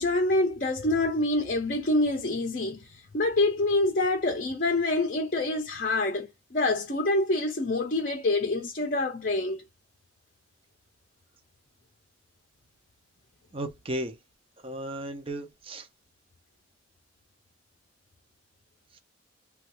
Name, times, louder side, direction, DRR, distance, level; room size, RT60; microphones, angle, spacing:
voice 1, 0.0-9.6, left 2 dB, 40° left, 0.6 m, -26 dB
voice 2, 13.5-14.2 14.6-15.9, right 1 dB, 25° right, 0.6 m, -35 dB
3.1 x 2.3 x 2.9 m
head